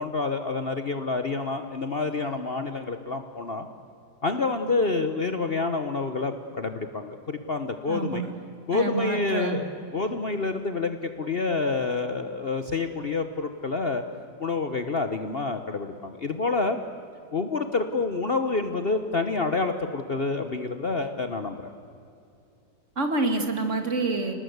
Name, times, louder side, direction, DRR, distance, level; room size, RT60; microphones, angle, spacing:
voice 1, 0.0-3.7 4.2-8.2 8.7-9.7 9.9-14.0 14.4-16.8 17.3-21.6, left 3 dB, 40° left, 7 dB, 1.1 m, -28 dB
voice 2, 7.9-8.3 8.7-9.6 23.0-24.3, right 3 dB, 45° right, 5 dB, 2.5 m, -27 dB
29.5 x 19.0 x 8.1 m, 2.6 s
omnidirectional pair, 1.8 m